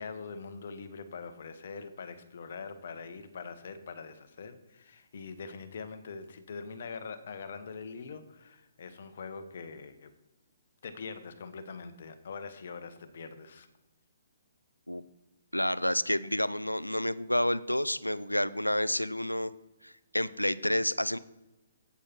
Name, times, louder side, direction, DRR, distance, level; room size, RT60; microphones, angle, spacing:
voice 1, 0.0-10.1 10.8-13.7, left 5 dB, 50° left, 10 dB, 1.2 m, -43 dB
voice 2, 15.5-19.5 19.8-21.2, left 1 dB, 90° left, 17 dB, 0.5 m, -29 dB
9.7 x 8.3 x 4.5 m, 1.0 s
figure-of-eight pair, 130°, 0 cm